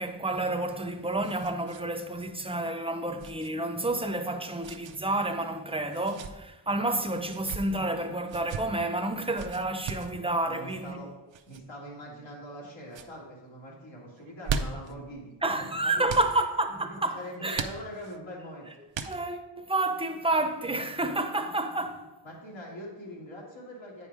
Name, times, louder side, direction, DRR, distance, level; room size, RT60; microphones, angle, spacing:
voice 1, 0.0-11.0 15.4-17.6 19.1-22.0, right 2 dB, 15° right, 0.7 m, -30 dB
sound 1, 0.5-1.9 2.1-2.3 3.2-3.5 4.6-5.0 5.9-6.3 7.2-7.6 8.3-8.6 9.4-10.1 11.3-11.6 12.2-12.6 12.9-13.1 14.2-14.9 16.1-16.3 17.5-18.2 18.9-19.5, right 5 dB, 80° right, 0.7 m, -37 dB
voice 2, 10.4-11.1 11.5-16.2 16.9-18.7 22.2-24.1, equal, 85° left, 2.6 m, -43 dB
8.5 x 5.6 x 4.8 m
wide cardioid pair, 110°, 45 cm